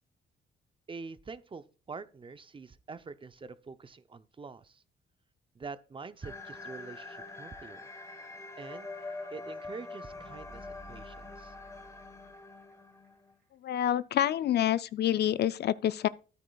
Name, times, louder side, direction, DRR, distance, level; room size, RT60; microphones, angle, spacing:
voice 1, 0.9-4.8 5.5-7.9 8.6-8.9 9.3-11.5, right 4 dB, 25° right, 0.6 m, -45 dB
sound 1, 6.2-13.3, left 3 dB, 15° left, 1.6 m, -45 dB
sound 2, 9.8-12.7 13.0-13.1, equal, 55° right, 2.4 m, -54 dB
voice 2, 13.6-16.1, left 11 dB, 55° left, 0.4 m, -27 dB
12.5 x 9.7 x 2.3 m
cardioid pair, 90°, 20 cm